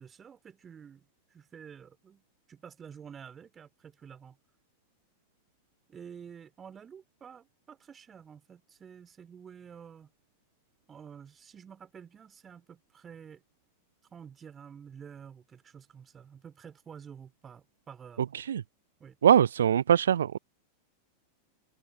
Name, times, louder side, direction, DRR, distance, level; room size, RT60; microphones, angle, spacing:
voice 1, 0.0-4.4 5.9-10.1 10.9-13.4 14.1-18.2 19.0-19.2, right 7 dB, 20° right, 4.4 m, -49 dB
voice 2, 19.2-20.4, right 9 dB, 65° right, 0.5 m, -22 dB
figure-of-eight pair, 90°, 0 cm